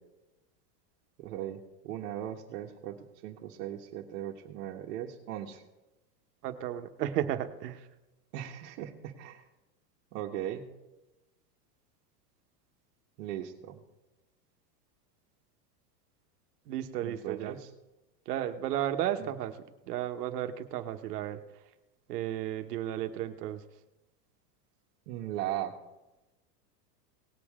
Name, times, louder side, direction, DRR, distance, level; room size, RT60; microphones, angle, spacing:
voice 1, 1.2-5.6 8.3-9.4 10.1-10.7 13.2-13.8 17.0-17.7 19.2-19.3 25.1-25.8, right 11 dB, 55° right, -3 dB, 1.5 m, -38 dB
voice 2, 6.4-7.9 16.7-17.6 18.2-19.6 19.9-21.4 22.1-23.6, right 11 dB, 70° right, 7 dB, 1.3 m, -33 dB
19.0 x 8.5 x 3.7 m, 1.0 s
supercardioid pair, 160°, 48 cm